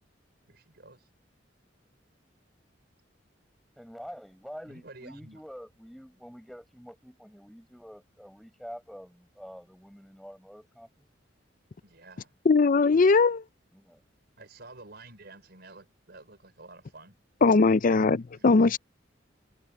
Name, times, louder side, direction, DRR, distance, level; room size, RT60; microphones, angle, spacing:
voice 1, 0.5-1.1 4.7-5.4 11.8-12.3 14.4-17.2 18.3-18.6, right 2 dB, 60° right, 5.4 m, -50 dB
voice 2, 3.8-10.9 13.7-14.0, equal, ahead, 7.1 m, -46 dB
voice 3, 12.5-13.4 17.4-18.8, left 4 dB, 45° left, 0.5 m, -20 dB
head